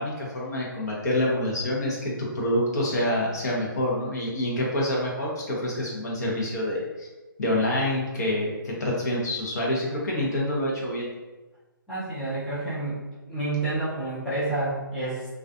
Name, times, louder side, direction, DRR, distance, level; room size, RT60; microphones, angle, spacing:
voice 1, 0.0-7.1 7.4-11.1, left 1 dB, 45° left, -3 dB, 0.8 m, -27 dB
voice 2, 11.9-13.0 13.3-15.3, right 2 dB, ahead, -14 dB, 0.5 m, -29 dB
2.4 x 2.3 x 2.5 m, 1.1 s
hypercardioid pair, 155°, 12 cm